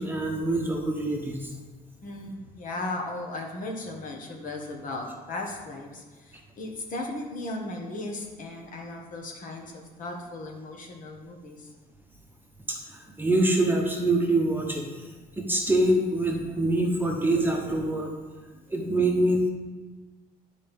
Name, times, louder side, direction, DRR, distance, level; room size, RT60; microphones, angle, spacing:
voice 1, 0.0-1.5 12.7-18.1 18.7-19.5, right 1 dB, 10° right, 0 dB, 1.0 m, -25 dB
voice 2, 2.0-11.7, left 2 dB, 50° left, 1 dB, 1.5 m, -36 dB
11.5 x 4.3 x 3.6 m, 1.3 s
cardioid pair, 110°, 17 cm